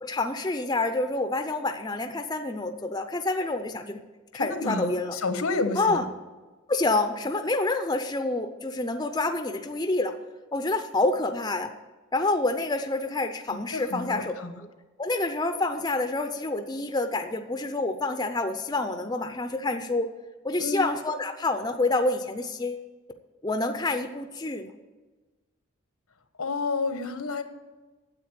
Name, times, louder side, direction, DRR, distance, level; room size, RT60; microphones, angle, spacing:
voice 1, 0.0-4.0 4.3-5.2 5.8-6.0 6.7-10.1 10.5-11.7 12.1-14.3 15.0-20.1 20.4-22.8 23.4-24.7, left 2 dB, 20° left, 7 dB, 0.6 m, -27 dB
voice 2, 4.3-6.1 13.5-14.6 20.6-20.9 26.4-27.4, left 3 dB, 90° left, 9 dB, 1.2 m, -30 dB
9.4 x 8.2 x 9.0 m, 1.3 s
head